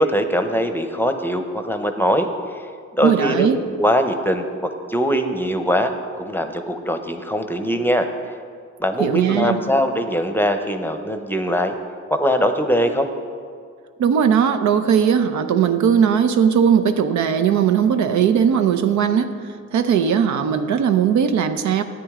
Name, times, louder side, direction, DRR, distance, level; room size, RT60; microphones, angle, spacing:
voice 1, 0.0-2.6 3.0-5.9 6.2-8.1 8.8-11.8 12.1-13.1, equal, 5° left, 7 dB, 0.8 m, -21 dB
voice 2, 3.0-3.6 9.0-9.6 14.0-19.3 19.7-21.8, right 8 dB, 70° right, 9 dB, 0.7 m, -18 dB
13.5 x 9.1 x 3.7 m, 2.1 s
cardioid pair, 90°, 30 cm